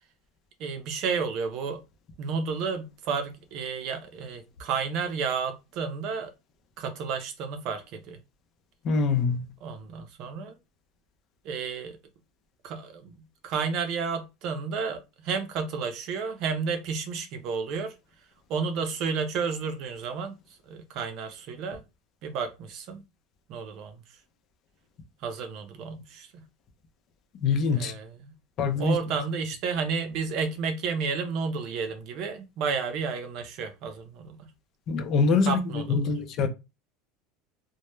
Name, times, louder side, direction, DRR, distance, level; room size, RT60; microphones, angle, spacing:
voice 1, 0.6-1.8 2.2-6.3 6.8-8.2 9.6-10.6 11.4-12.0 12.6-18.0 18.5-20.4 20.7-21.8 22.2-23.0 23.5-24.0 25.2-26.4 27.7-28.3 28.8-34.5 35.5-36.1, right 5 dB, 55° right, 0.6 m, -31 dB
voice 2, 8.8-9.5 27.4-27.9 28.6-29.0 34.9-36.5, left 4 dB, 45° left, 0.5 m, -24 dB
2.1 x 2.0 x 3.1 m
supercardioid pair, 130°, 0 cm